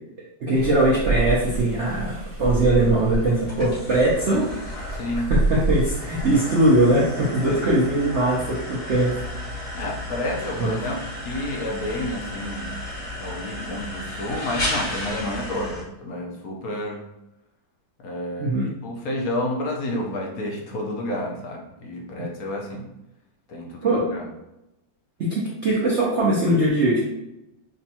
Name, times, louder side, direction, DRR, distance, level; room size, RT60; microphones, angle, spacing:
voice 1, 0.4-4.5 5.1-9.1 10.6-10.7 18.4-18.7 23.8-24.1 25.2-27.0, right 1 dB, 65° right, -6 dB, 0.7 m, -21 dB
sound 1, 0.5-6.4, right 2 dB, 25° right, 0.6 m, -28 dB
sound 2, 2.4-15.8, left 1 dB, 85° left, 2.5 m, -34 dB
voice 2, 4.9-5.3 6.4-6.6 7.5-7.7 9.7-17.0 18.0-22.8 23.5-24.2, left 1 dB, 65° left, 0 dB, 0.9 m, -30 dB
5.0 x 2.3 x 2.8 m, 0.90 s
omnidirectional pair, 2.1 m